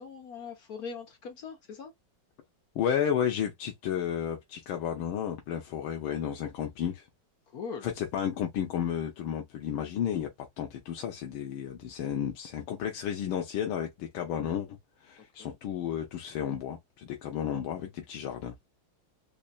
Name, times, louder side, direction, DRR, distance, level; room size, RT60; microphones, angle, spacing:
voice 1, 0.0-1.9 7.5-7.9 15.4-15.6, left 5 dB, 55° left, 1.3 m, -41 dB
voice 2, 2.7-7.1 7.8-10.3 10.6-14.7 15.0-18.6, left 9 dB, 85° left, 1.5 m, -32 dB
4.2 x 3.1 x 2.3 m
omnidirectional pair, 2.2 m